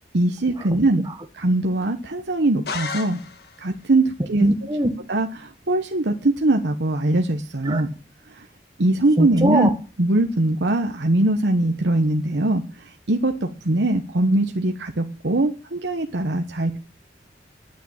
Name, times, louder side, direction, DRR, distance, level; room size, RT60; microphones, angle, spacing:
voice 1, 0.1-1.1 1.3-3.2 3.6-4.5 5.1-7.9 8.4-8.5 8.8-9.7 10.0-12.6 13.1-16.8, right 2 dB, 70° right, 4 dB, 1.1 m, -21 dB
sound 1, 2.7-3.7, left 4 dB, 60° left, 1.6 m, -32 dB
voice 2, 4.4-4.9 7.7-7.8 9.2-9.7, right 1 dB, 20° right, 6 dB, 1.4 m, -20 dB
9.5 x 9.2 x 8.7 m, 0.36 s
head